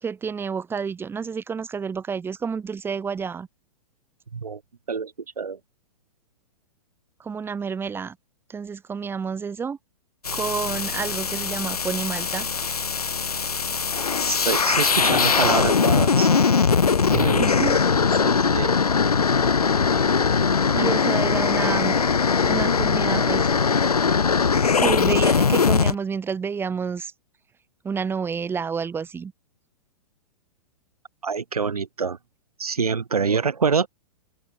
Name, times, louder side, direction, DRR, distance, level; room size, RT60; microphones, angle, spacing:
voice 1, 0.0-3.5 7.2-8.2 8.5-9.8 10.3-12.5 17.4-17.8 18.1-18.3 20.7-22.0 22.4-23.5 24.8-27.1 27.8-29.3, right 6 dB, 10° right, 1.2 m, -29 dB
voice 2, 4.9-5.6 14.3-16.3 17.1-17.7 18.4-18.7 31.2-32.2 32.6-33.9, right 5 dB, 80° right, 2.2 m, -26 dB
sound 1, 10.3-26.0, left 5 dB, 80° left, 1.4 m, -21 dB
open air
figure-of-eight pair, 110°, 19 cm